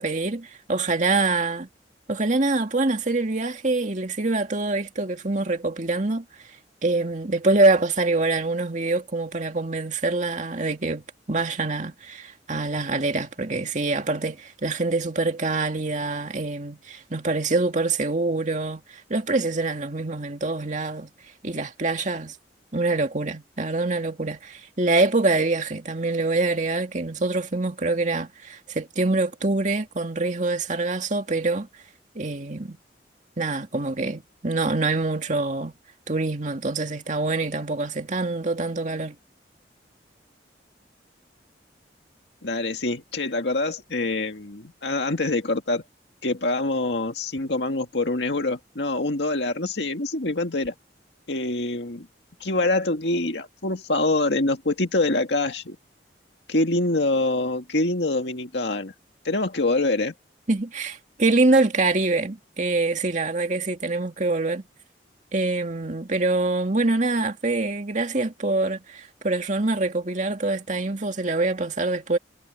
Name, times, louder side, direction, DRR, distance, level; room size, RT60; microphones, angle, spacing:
voice 1, 0.0-1.7 2.1-6.2 6.8-21.1 21.4-22.4 22.7-31.7 32.2-32.8 33.4-35.7 36.1-39.2 60.5-64.6 65.3-72.2, right 2 dB, 45° right, 2.1 m, -25 dB
voice 2, 42.4-45.8 46.2-50.7 51.3-52.1 52.4-55.8 56.5-58.9 59.2-60.1, left 2 dB, 75° left, 2.0 m, -25 dB
head